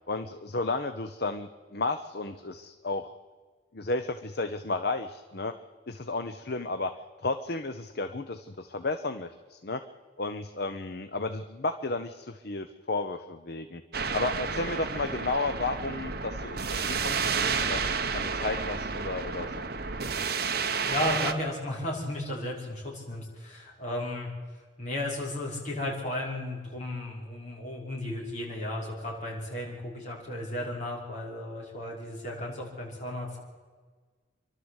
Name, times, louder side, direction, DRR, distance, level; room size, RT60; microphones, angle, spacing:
voice 1, 0.1-3.1 3.7-5.5 5.9-6.9 7.2-9.8 10.2-13.8 14.1-17.8 18.1-19.6, left 3 dB, 55° left, 8 dB, 0.8 m, -33 dB
sound 1, 13.9-21.3, right 5 dB, 50° right, 1.2 m, -31 dB
voice 2, 20.8-24.3 24.8-33.4, left 1 dB, 35° left, -4 dB, 5.6 m, -34 dB
27.0 x 12.0 x 8.1 m, 1.5 s
head